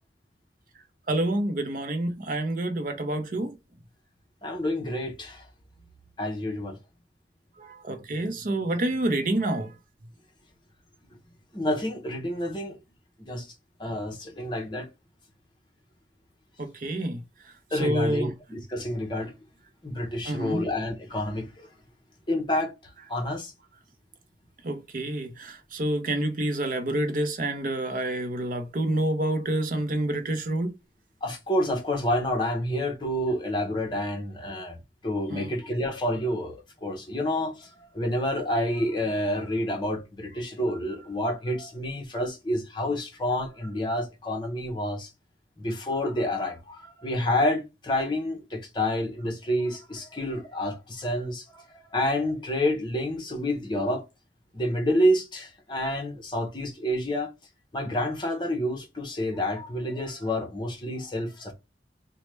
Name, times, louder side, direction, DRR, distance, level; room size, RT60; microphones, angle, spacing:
voice 1, 1.1-3.5 7.6-9.7 16.6-17.2 17.8-18.3 20.2-20.6 24.6-30.7 35.3-35.5, right 1 dB, 50° right, 0.6 m, -28 dB
voice 2, 4.4-5.4 6.2-6.8 11.5-12.8 13.2-13.5 13.8-14.9 17.7-19.3 19.8-21.7 22.3-22.7 23.1-23.5 31.2-34.8 35.0-45.1 45.6-54.0 54.5-57.3 57.7-61.5, left 1 dB, 25° left, 0.7 m, -28 dB
3.1 x 2.1 x 3.1 m
head